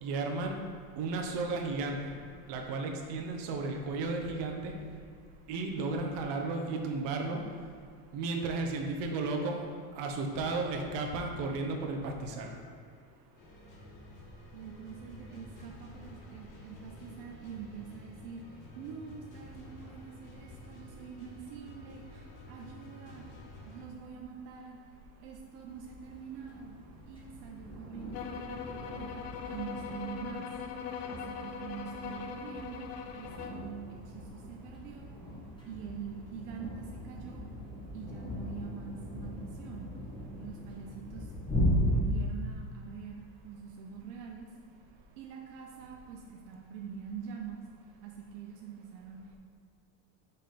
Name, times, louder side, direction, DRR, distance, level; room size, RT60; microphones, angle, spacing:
voice 1, 0.0-0.6 1.0-2.2 2.5-4.7 5.5-7.4 8.1-9.6 9.9-12.5, right 3 dB, 65° right, 3 dB, 1.1 m, -34 dB
sound 1, 13.4-23.9, left 1 dB, 45° left, 1.5 m, -51 dB
voice 2, 14.5-22.0 22.5-23.2 23.6-24.8 25.2-26.8 27.1-29.2 29.5-30.5 31.1-35.1 35.7-37.4 37.9-39.9 40.3-41.3 41.8-44.5 45.2-47.6 48.0-49.2, right 7 dB, 90° right, 0 dB, 0.8 m, -45 dB
sound 2, 25.7-42.0, equal, 10° left, 1.5 m, -38 dB
sound 3, 28.1-33.6, left 7 dB, 85° left, 0.8 m, -41 dB
5.5 x 3.6 x 5.9 m, 2.2 s
supercardioid pair, 115°, 45 cm